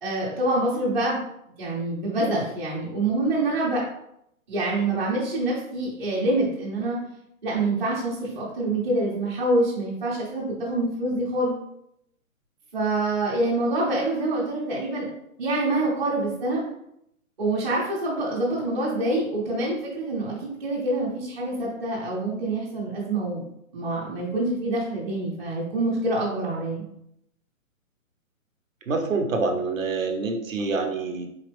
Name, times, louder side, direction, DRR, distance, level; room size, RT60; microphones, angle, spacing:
voice 1, 0.0-1.2 1.6-3.8 4.5-7.0 7.4-11.6 12.7-15.1 15.4-16.6 17.4-23.4 23.7-26.8, right 2 dB, 35° right, -6 dB, 1.0 m, -26 dB
voice 2, 28.9-31.3, right 3 dB, 70° right, 4 dB, 1.0 m, -26 dB
4.3 x 3.6 x 3.4 m, 0.78 s
hypercardioid pair, 175°, 41 cm